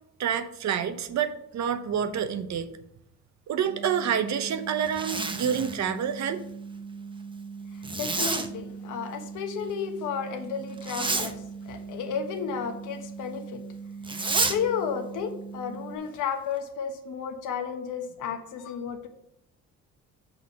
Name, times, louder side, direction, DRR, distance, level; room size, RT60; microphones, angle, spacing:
voice 1, 0.2-2.7 3.5-6.4, right 8 dB, 65° right, 10 dB, 0.9 m, -28 dB
sound 1, 3.6-16.0, right 5 dB, 70° left, 1.8 m, -41 dB
Zipper (clothing), 4.8-5.8 7.8-8.5 10.8-11.3 14.0-14.6, right 3 dB, 15° right, 0.8 m, -29 dB
voice 2, 8.0-13.6 14.1-19.1, left 7 dB, 90° left, 6 dB, 1.2 m, -33 dB
6.2 x 5.7 x 6.4 m, 0.77 s
cardioid pair, 90°, 30 cm